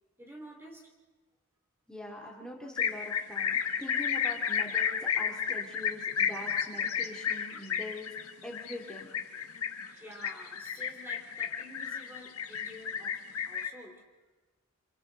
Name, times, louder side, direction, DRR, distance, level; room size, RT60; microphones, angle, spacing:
voice 1, 0.2-0.9 9.8-14.1, equal, 10° right, 0 dB, 2.8 m, -49 dB
voice 2, 1.9-8.1 8.4-9.1, left 1 dB, 5° left, -2 dB, 2.7 m, -43 dB
sound 1, 2.8-13.7, left 8 dB, 80° left, 1.3 m, -32 dB
27.5 x 27.5 x 4.0 m, 1.2 s
head